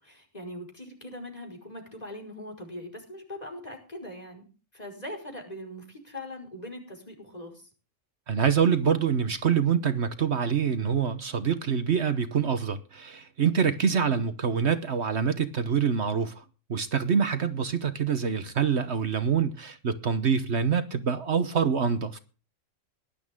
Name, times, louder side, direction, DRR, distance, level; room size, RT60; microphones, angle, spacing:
voice 1, 0.0-4.5 4.7-7.7 14.0-14.3, left 1 dB, 30° left, 5.3 m, -41 dB
voice 2, 8.3-16.4 16.7-22.2, right 7 dB, 60° right, 1.3 m, -25 dB
19.0 x 11.5 x 3.7 m
omnidirectional pair, 1.3 m